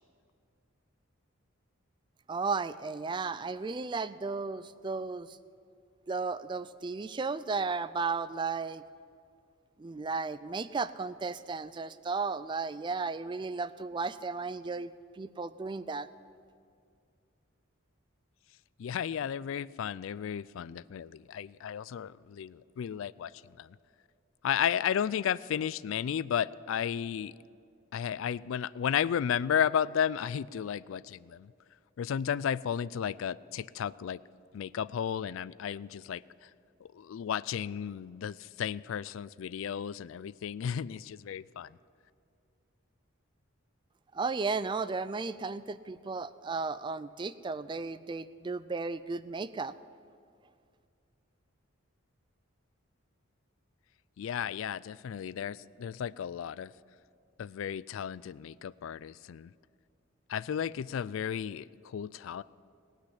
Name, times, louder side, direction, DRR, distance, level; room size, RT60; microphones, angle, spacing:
voice 1, 2.3-5.4 6.1-8.8 9.8-16.1 44.1-49.7, right 4 dB, 20° right, 16 dB, 0.3 m, -34 dB
voice 2, 18.8-23.8 24.4-27.4 27.9-31.5 32.0-34.2 34.5-36.5 36.8-41.8 54.2-56.7 57.4-59.5 60.3-62.4, left 8 dB, 70° left, 20 dB, 0.3 m, -33 dB
19.0 x 6.4 x 9.9 m, 2.3 s
head